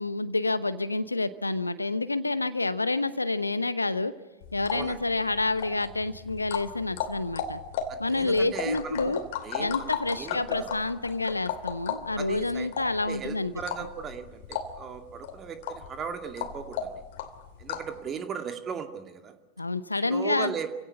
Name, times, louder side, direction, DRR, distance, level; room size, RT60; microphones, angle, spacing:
voice 1, 0.0-4.1 4.5-7.6 8.0-9.2 9.6-13.5 19.6-20.5, left 2 dB, 80° left, 16 dB, 0.9 m, -28 dB
sound 1, 4.4-18.0, left 8 dB, 50° left, 2.7 m, -36 dB
voice 2, 8.1-9.1 9.4-10.7 12.2-12.7 13.1-16.9 17.6-19.3 20.1-20.7, right 7 dB, 25° right, 7 dB, 2.3 m, -37 dB
28.5 x 17.0 x 9.8 m, 1.2 s
figure-of-eight pair, 90°, 0 cm